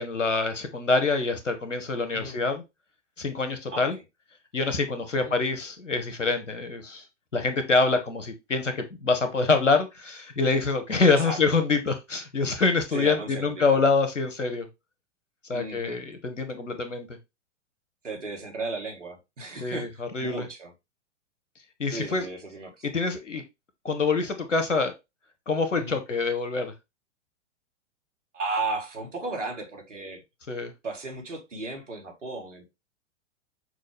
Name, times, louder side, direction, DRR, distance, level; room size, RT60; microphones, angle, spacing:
voice 1, 0.0-2.6 3.2-4.0 4.5-7.0 7.3-14.7 15.5-17.1 19.6-20.4 21.8-22.3 22.8-23.4 23.8-24.9 25.5-26.7 30.5-30.7, left 4 dB, 80° left, 1.0 m, -25 dB
voice 2, 3.7-4.0 5.1-5.4 11.0-11.4 12.9-13.8 15.5-16.0 18.0-20.7 21.9-22.9 25.8-25.9 28.3-30.2 30.8-32.7, right 3 dB, 80° right, 1.4 m, -35 dB
6.1 x 2.3 x 3.2 m
figure-of-eight pair, 105°, 36 cm